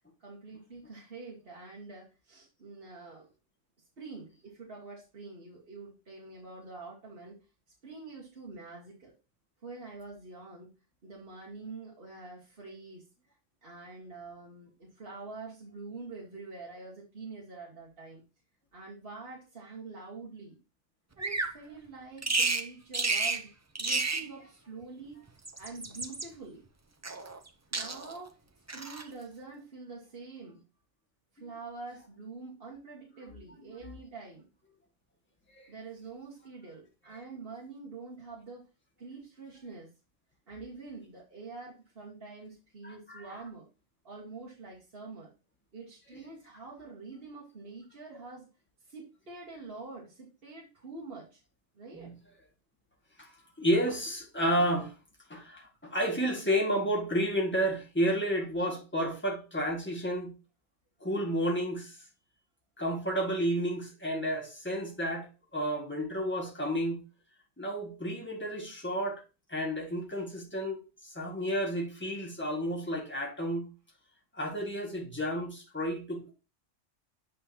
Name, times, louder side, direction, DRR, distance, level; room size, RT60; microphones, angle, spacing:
voice 1, 0.2-3.3 4.0-7.4 7.8-9.1 9.6-10.7 11.0-13.1 13.6-18.2 18.7-20.6 21.2-23.5 23.8-25.3 25.6-26.6 27.7-28.4 28.7-30.6 31.3-34.5 35.7-38.6 39.0-39.9 40.5-43.7 44.0-45.3 45.7-48.5 48.8-51.4 51.7-52.1 58.6-58.8, right 4 dB, 50° right, 1.8 m, -46 dB
Bird vocalization bird call bird song, 21.2-21.6 22.2-22.7 22.9-23.4 23.7-24.3 25.3-26.3 27.0-27.5 27.7-28.2 28.7-29.1, right 3 dB, 25° right, 0.3 m, -31 dB
voice 2, 33.3-34.0 37.1-37.2 42.8-43.5 46.1-46.2 48.1-48.2 51.9-52.1 53.2-53.3 53.6-54.9 55.3-60.3 61.0-62.0 62.8-67.0 67.6-69.2 69.5-70.8 71.1-73.7 74.3-76.3, equal, 10° left, 1.7 m, -31 dB
8.3 x 5.6 x 2.8 m
omnidirectional pair, 1.3 m